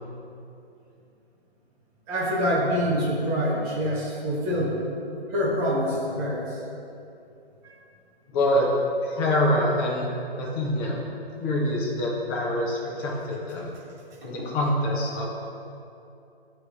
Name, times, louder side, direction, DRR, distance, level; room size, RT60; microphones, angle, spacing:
voice 1, 2.1-4.8 5.3-6.5 14.4-14.5, equal, 10° right, -5 dB, 0.5 m, -25 dB
voice 2, 8.3-8.7 9.0-10.1 10.4-11.0 11.3-13.7 14.2-15.3, left 1 dB, 20° left, -3 dB, 0.9 m, -25 dB
9.8 x 3.3 x 4.8 m, 2.7 s
figure-of-eight pair, 140°, 31 cm